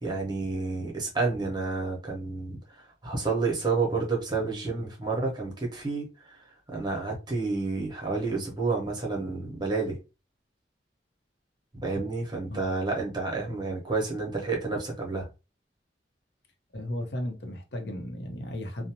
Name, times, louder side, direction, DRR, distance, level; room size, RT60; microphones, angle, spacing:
voice 1, 0.0-2.6 3.0-6.4 6.7-10.0 11.8-15.3, right 3 dB, 25° right, 0.8 m, -30 dB
voice 2, 16.7-18.9, left 1 dB, 70° left, 0.6 m, -35 dB
2.5 x 2.0 x 2.8 m
head